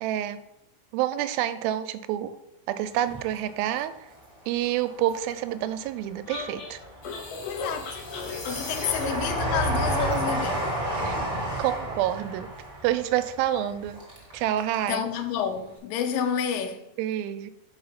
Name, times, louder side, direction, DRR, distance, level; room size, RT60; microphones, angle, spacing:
voice 1, 0.0-0.4 0.9-2.4 2.7-3.9 4.5-6.8 11.0-11.2 11.6-12.5 12.8-14.0 14.3-15.0 17.0-17.5, right 12 dB, 90° right, 2.4 m, -28 dB
Train, 2.9-4.2 4.6-5.6 6.1-14.9 15.1-15.2, right 1 dB, 35° right, 0.6 m, -32 dB
sound 1, 6.3-10.2, left 1 dB, 65° left, 2.5 m, -33 dB
voice 2, 7.4-8.0 8.5-10.7 14.9-16.9, left 8 dB, 85° left, 2.3 m, -29 dB
5.5 x 4.8 x 5.7 m
omnidirectional pair, 4.1 m